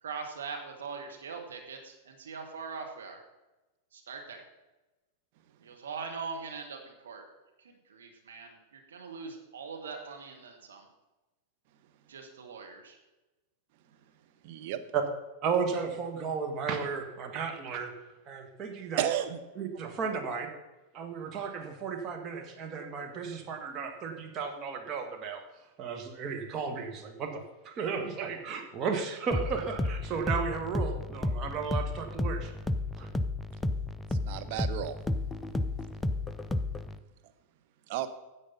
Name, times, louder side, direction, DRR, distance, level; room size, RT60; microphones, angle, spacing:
voice 1, 0.0-3.2 3.9-4.4 5.6-7.2 7.6-10.9 12.1-13.0, right 5 dB, 65° right, 3 dB, 1.5 m, -42 dB
voice 2, 14.4-14.8 19.0-19.4 34.2-35.0 37.9-38.1, right 11 dB, 50° right, 8 dB, 0.9 m, -32 dB
voice 3, 15.4-17.9 18.3-19.0 19.6-20.5 20.9-25.4 25.8-32.5 33.0-33.1, right 5 dB, 30° right, 3 dB, 1.6 m, -34 dB
sound 1, 29.3-37.0, left 2 dB, 10° left, 0.5 m, -32 dB
10.0 x 7.5 x 5.5 m, 1.1 s
figure-of-eight pair, 90°, 0 cm